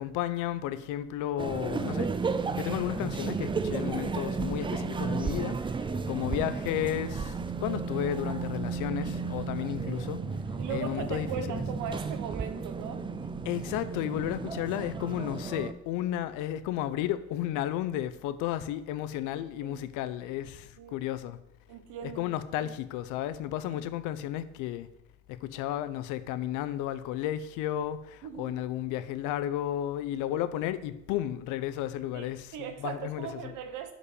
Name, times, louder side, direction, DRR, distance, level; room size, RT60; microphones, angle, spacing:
voice 1, 0.0-2.1 2.5-10.2 10.7-11.6 13.4-21.4 22.0-24.9 25.3-33.5, left 12 dB, 75° left, 0.7 m, -33 dB
sound 1, 1.4-15.7, right 4 dB, 15° right, 0.4 m, -33 dB
voice 2, 5.9-6.3 9.9-10.1 10.6-13.0 19.6-19.8 20.8-21.0 21.7-22.7 23.7-23.8 28.2-28.6 32.1-33.9, right 8 dB, 70° right, 1.3 m, -39 dB
8.5 x 5.2 x 5.2 m
cardioid pair, 110°, 31 cm